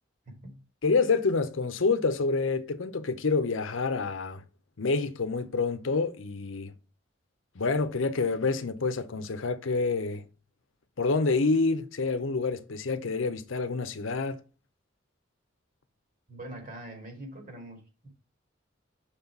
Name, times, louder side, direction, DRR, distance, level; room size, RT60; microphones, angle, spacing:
voice 1, 0.3-0.6 16.3-18.1, right 1 dB, 45° right, 2.4 m, -43 dB
voice 2, 0.8-4.4 4.8-6.7 7.6-10.3 11.0-14.4, left 4 dB, 85° left, 0.7 m, -27 dB
6.1 x 4.0 x 5.9 m
head